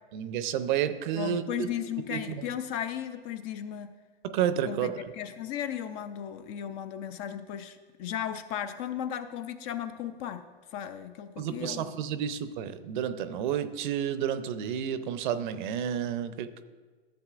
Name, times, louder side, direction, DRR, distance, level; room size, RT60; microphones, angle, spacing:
voice 1, 0.1-1.7 2.1-2.2 4.2-4.9 11.4-16.6, right 9 dB, 50° right, 12 dB, 0.6 m, -30 dB
voice 2, 1.2-4.0 4.7-10.4 10.7-11.9, left 10 dB, 35° left, 10 dB, 0.5 m, -36 dB
14.0 x 7.2 x 2.5 m, 1.4 s
hypercardioid pair, 120°, 31 cm